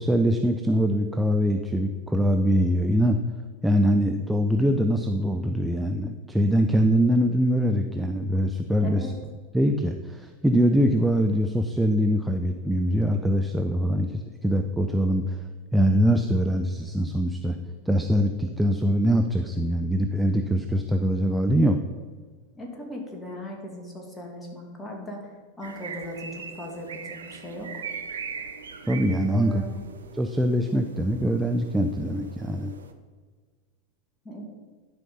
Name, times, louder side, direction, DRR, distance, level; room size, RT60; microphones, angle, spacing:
voice 1, 0.0-3.2 3.6-9.1 9.5-15.4 15.7-17.6 17.9-21.8 28.9-29.6 30.1-32.7, equal, 5° right, 5 dB, 0.6 m, -23 dB
voice 2, 8.8-9.1 22.5-27.8 29.3-29.8 34.2-34.4, left 1 dB, 15° left, 1 dB, 2.3 m, -38 dB
sound 1, 25.6-32.9, right 6 dB, 75° right, 0.7 m, -40 dB
11.0 x 5.3 x 5.4 m, 1.5 s
figure-of-eight pair, 90°, 0 cm